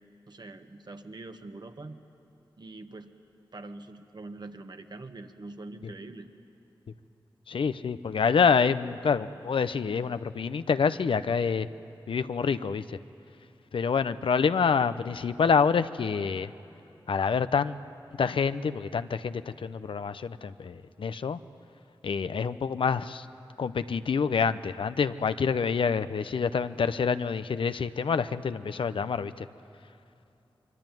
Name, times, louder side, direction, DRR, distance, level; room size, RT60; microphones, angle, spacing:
voice 1, 0.3-2.0 2.6-3.1 3.5-6.3, right 2 dB, 55° right, 6 dB, 1.5 m, -43 dB
voice 2, 7.5-11.7 12.1-13.0 13.7-16.5 17.1-17.8 18.1-21.4 22.0-23.3 23.6-29.5, left 6 dB, 80° left, 12 dB, 0.6 m, -27 dB
25.0 x 22.5 x 9.1 m, 2.8 s
cardioid pair, 45°, 9 cm